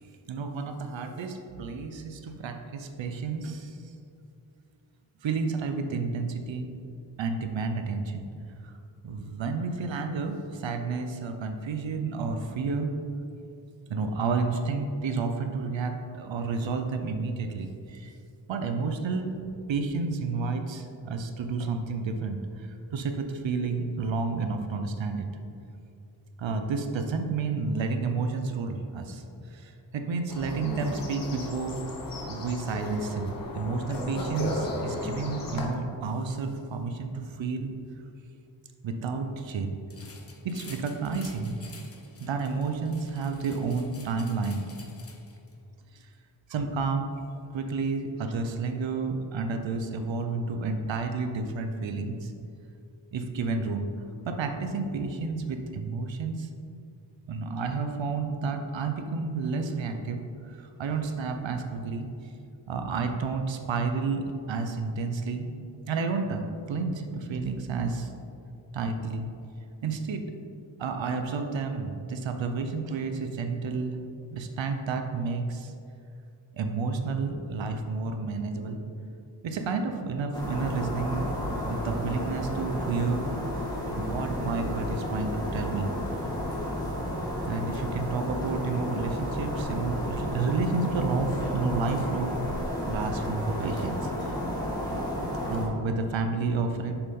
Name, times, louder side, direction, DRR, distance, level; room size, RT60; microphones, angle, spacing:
voice 1, 0.0-3.8 5.2-6.7 7.2-8.3 8.6-8.8 9.0-12.9 13.9-18.1 18.5-25.3 26.4-31.8 32.2-37.7 38.8-39.8 40.4-41.6 42.2-44.7 45.9-46.0 46.5-47.1 47.5-52.3 53.1-53.9 54.3-56.5 57.3-62.1 62.7-65.5 65.9-68.1 68.7-69.3 69.8-70.3 70.8-74.0 74.3-75.7 76.5-78.8 79.4-81.3 81.7-83.3 83.9-85.9 87.5-92.4 92.8-94.4 95.5-96.9, right 4 dB, 90° right, 6 dB, 0.7 m, -31 dB
sound 1, 30.3-35.6, left 2 dB, 50° left, 1.1 m, -35 dB
sound 2, 39.9-45.5, left 3 dB, 35° left, 0.7 m, -50 dB
sound 3, 80.3-95.7, left 1 dB, 10° left, 1.5 m, -32 dB
7.0 x 5.3 x 3.6 m, 2.6 s
wide cardioid pair, 100°, 44 cm